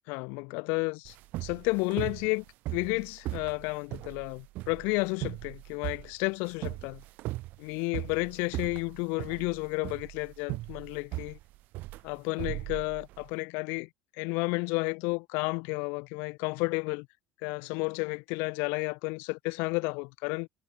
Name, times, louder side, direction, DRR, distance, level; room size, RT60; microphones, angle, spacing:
voice 1, 0.1-1.1 1.4-2.4 2.7-7.0 7.6-11.4 12.0-13.9 14.2-17.1 17.4-20.5, left 31 dB, 70° left, 4.6 m, -32 dB
sound 1, 1.1-13.3, right 18 dB, 50° right, 2.5 m, -38 dB
cardioid pair, 165°, 4 cm